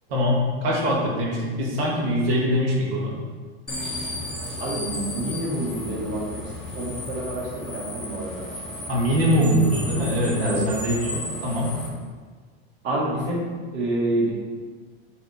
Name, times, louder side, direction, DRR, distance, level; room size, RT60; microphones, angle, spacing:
voice 1, 0.1-3.1 8.9-11.7, equal, 70° right, -3 dB, 2.5 m, -23 dB
sound 1, 3.7-11.9, left 1 dB, ahead, 1.8 m, -34 dB
voice 2, 4.6-8.5 10.4-10.6 12.8-13.5 13.7-14.3, right 1 dB, 35° right, -5 dB, 2.1 m, -28 dB
8.0 x 5.6 x 4.5 m, 1.5 s
supercardioid pair, 140°, 31 cm